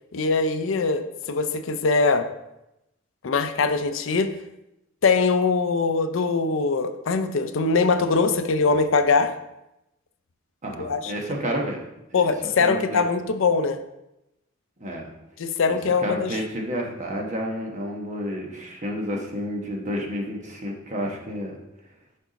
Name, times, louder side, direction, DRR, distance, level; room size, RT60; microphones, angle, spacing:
voice 1, 0.1-1.0 1.3-2.3 3.2-4.3 5.0-9.3 10.8-11.1 12.1-13.8 15.4-16.4, left 4 dB, 60° left, 9 dB, 0.5 m, -22 dB
voice 2, 10.6-11.9 12.1-12.2 12.6-13.1 14.8-15.1 15.7-21.6, equal, 35° right, 0 dB, 1.1 m, -30 dB
6.5 x 5.7 x 4.0 m, 0.90 s
head